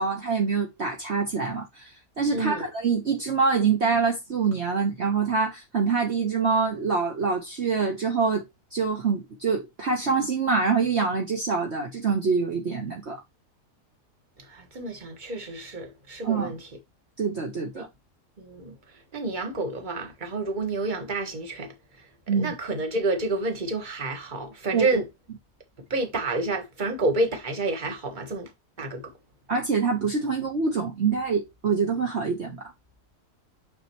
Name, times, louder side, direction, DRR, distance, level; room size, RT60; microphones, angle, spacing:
voice 1, 0.0-8.4 8.7-13.2 16.2-16.5 17.2-17.9 22.3-22.5 24.7-25.0 29.5-32.6, right 5 dB, 45° right, 1.4 m, -25 dB
voice 2, 2.3-2.6 14.5-16.7 17.7-17.8 18.4-18.8 19.1-21.7 22.4-25.0 25.9-28.5 28.8-29.0, right 2 dB, 30° right, 1.6 m, -29 dB
6.5 x 6.5 x 3.0 m
omnidirectional pair, 1.6 m